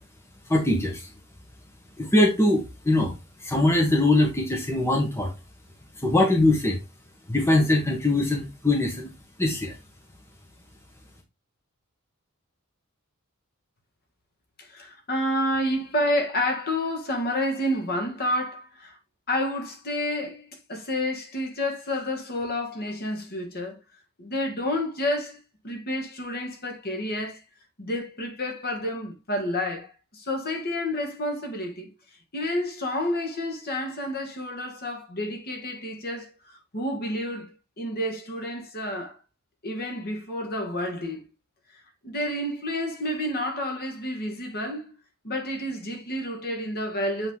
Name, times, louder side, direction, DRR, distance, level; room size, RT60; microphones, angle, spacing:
voice 1, 0.5-1.1 2.0-3.1 3.4-5.3 6.0-6.8 7.3-9.1 9.4-9.7, left 1 dB, 10° left, 1.4 m, -22 dB
voice 2, 14.6-19.0 19.3-23.8 24.2-25.4 25.6-27.4 27.8-31.9 32.3-39.2 39.6-41.2 42.0-44.9 45.2-47.3, left 1 dB, 45° left, 1.9 m, -29 dB
8.3 x 4.0 x 3.7 m
head